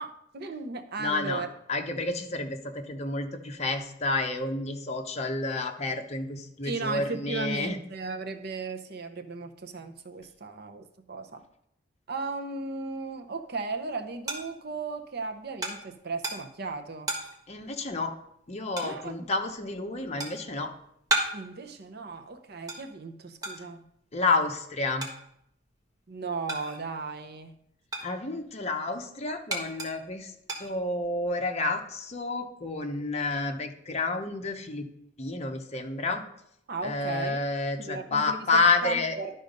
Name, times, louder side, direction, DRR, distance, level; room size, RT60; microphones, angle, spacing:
voice 1, 0.0-1.5 6.6-11.4 12.1-17.1 18.8-19.3 21.3-23.8 26.1-27.6 36.7-37.4 37.8-39.4, right 3 dB, 60° right, 6 dB, 0.8 m, -36 dB
voice 2, 1.0-7.8 17.5-18.1 18.5-20.7 24.1-25.1 28.0-30.3 30.6-34.9 35.2-36.2 36.8-39.2, left 3 dB, 35° left, 4 dB, 0.9 m, -30 dB
sound 1, 13.3-27.1 27.4-31.3, right 1 dB, 20° right, 1.3 m, -37 dB
11.5 x 3.9 x 5.3 m, 0.76 s
head